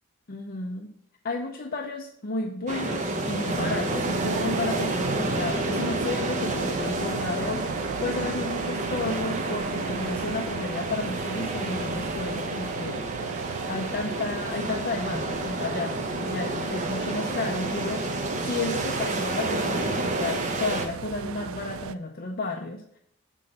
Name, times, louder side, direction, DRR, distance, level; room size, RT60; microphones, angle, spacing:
voice 1, 0.3-0.9 1.2-13.4 13.7-23.0, left 3 dB, 45° left, 2 dB, 0.6 m, -32 dB
sound 1, 2.7-20.9, right 2 dB, 35° right, 0.9 m, -30 dB
sound 2, 3.6-21.9, right 7 dB, 75° right, 0.4 m, -36 dB
7.5 x 3.8 x 6.6 m, 0.69 s
head